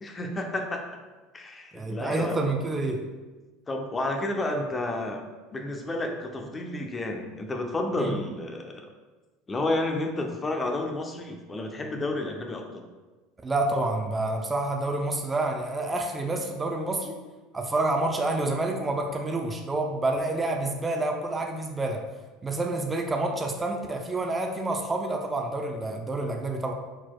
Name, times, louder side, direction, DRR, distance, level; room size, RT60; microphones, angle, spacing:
voice 1, 0.0-1.0 1.3-2.5 3.7-5.2 5.5-8.9 9.5-12.8, left 2 dB, 25° left, 3 dB, 0.6 m, -31 dB
voice 2, 1.7-3.0 8.0-8.1 13.4-17.2 17.5-22.0 22.4-26.7, right 2 dB, 20° right, 2 dB, 0.5 m, -28 dB
4.4 x 4.2 x 2.3 m, 1.2 s
hypercardioid pair, 75°, 0 cm